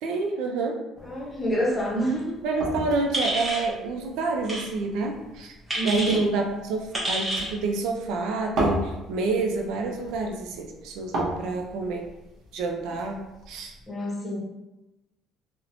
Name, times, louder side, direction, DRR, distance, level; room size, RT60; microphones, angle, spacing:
voice 1, 0.0-0.8 2.4-5.5 5.8-12.0 12.5-13.2 13.5-13.7, right 3 dB, 80° right, 2 dB, 0.4 m, -28 dB
voice 2, 1.0-2.4 5.7-6.2 13.9-14.4, right 1 dB, 15° left, -3 dB, 0.7 m, -27 dB
sound 1, 1.0-13.9, equal, 60° right, 0.7 m, -37 dB
sound 2, 3.1-3.7 4.4-4.6 5.7-6.2 6.9-7.5, right 1 dB, 15° right, 0.8 m, -28 dB
2.8 x 2.0 x 2.6 m, 1.0 s
cardioid pair, 130°, 0 cm